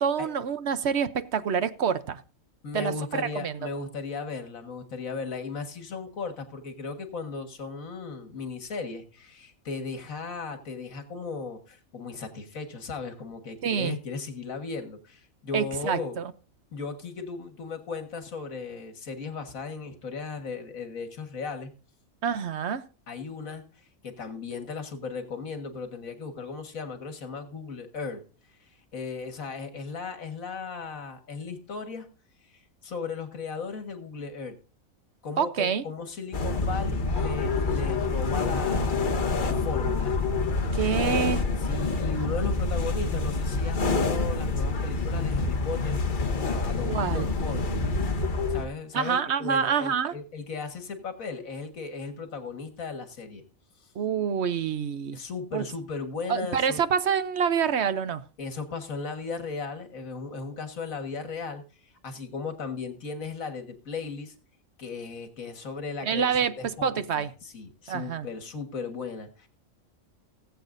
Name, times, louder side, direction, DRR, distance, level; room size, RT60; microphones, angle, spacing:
voice 1, 0.0-2.2 2.7-3.5 13.6-14.0 15.5-16.3 22.2-22.8 35.4-35.8 40.7-41.4 46.8-47.3 48.9-50.1 54.0-55.2 55.5-55.6 56.3-58.2 66.0-66.5 66.8-67.3 67.9-68.3, right 7 dB, 55° right, 12 dB, 1.0 m, -27 dB
voice 2, 2.6-16.2 16.7-21.7 23.1-28.2 28.9-32.1 32.5-34.6 35.2-39.1 39.4-40.2 41.6-46.0 46.4-47.7 48.5-53.4 53.8-53.9 55.1-56.8 58.4-61.6 62.0-64.3 64.8-69.5, left 4 dB, 75° left, 7 dB, 2.0 m, -36 dB
sound 1, 36.3-48.7, left 3 dB, 40° left, 1.2 m, -27 dB
18.0 x 8.2 x 2.6 m, 0.37 s
omnidirectional pair, 1.4 m